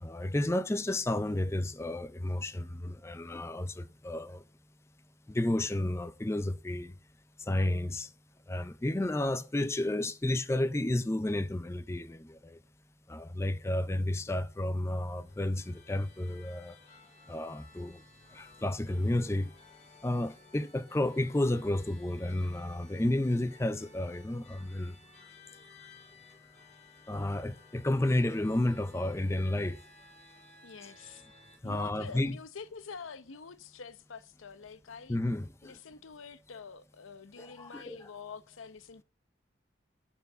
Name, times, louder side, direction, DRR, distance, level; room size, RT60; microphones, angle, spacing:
voice 1, 0.0-4.4 5.3-6.9 7.4-8.1 8.5-12.6 13.1-16.8 17.3-18.0 18.3-19.5 20.0-25.0 27.1-29.8 31.6-32.4 35.1-35.8 37.4-38.1, left 1 dB, 15° left, 0.4 m, -31 dB
sound 1, 14.8-31.6, left 3 dB, 35° left, 3.7 m, -58 dB
voice 2, 30.6-31.2 31.6-35.2 35.6-39.0, left 5 dB, 85° left, 0.7 m, -46 dB
12.0 x 4.5 x 7.9 m
head